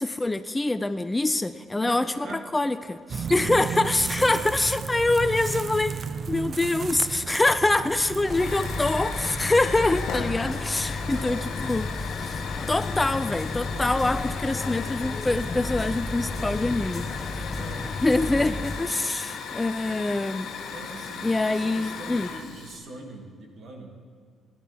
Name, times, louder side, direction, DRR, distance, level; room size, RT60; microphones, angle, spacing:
voice 1, 0.0-17.1 18.0-20.5 21.2-22.3, left 2 dB, 15° left, 12 dB, 0.4 m, -25 dB
voice 2, 1.8-2.4 4.1-4.6 7.9-8.6 10.1-10.8 11.0-11.4 17.5-17.9 20.7-23.9, right 2 dB, 65° right, 0 dB, 2.3 m, -42 dB
sound 1, 3.1-9.7, right 6 dB, 50° right, 0.5 m, -34 dB
Hiss / Fire, 8.3-22.8, left 6 dB, 80° left, 1.1 m, -37 dB
sound 2, 8.3-18.8, left 3 dB, 35° left, 1.0 m, -32 dB
17.0 x 11.0 x 3.5 m, 2.1 s
cardioid pair, 90°, 0 cm